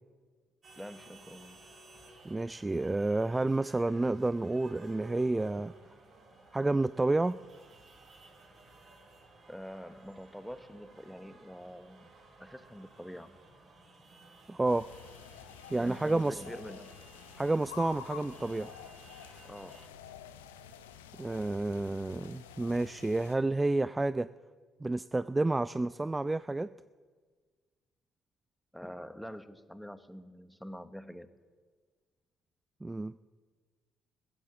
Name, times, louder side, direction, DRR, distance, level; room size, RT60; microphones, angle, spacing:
sound 1, 0.6-19.9, right 3 dB, 50° right, 4.6 m, -56 dB
voice 1, 0.8-1.6 9.5-12.1 12.4-13.4 15.8-17.0 19.5-19.9 28.7-31.3, equal, ahead, 12 dB, 1.0 m, -45 dB
voice 2, 2.2-5.7 6.5-7.4 14.5-14.9 15.7-16.4 17.4-18.7 21.2-24.3 24.8-26.7 32.8-33.1, right 2 dB, 20° right, 16 dB, 0.3 m, -30 dB
sound 2, 14.6-23.4, left 9 dB, 85° left, 0.6 m, -49 dB
15.5 x 8.9 x 7.2 m, 1.5 s
hypercardioid pair, 45°, 0 cm